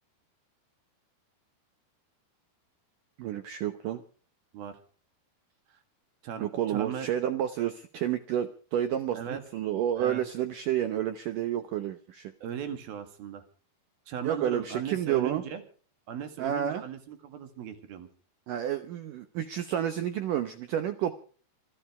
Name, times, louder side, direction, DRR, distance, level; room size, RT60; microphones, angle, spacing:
voice 1, 3.2-4.0 6.4-12.3 14.2-15.4 16.4-16.8 18.5-21.1, right 10 dB, 80° right, 9 dB, 1.9 m, -30 dB
voice 2, 6.2-7.1 9.1-9.4 10.0-10.2 12.4-13.4 14.1-15.6 16.1-18.1, right 8 dB, 60° right, 8 dB, 3.6 m, -38 dB
26.5 x 12.5 x 3.4 m, 0.41 s
omnidirectional pair, 5.1 m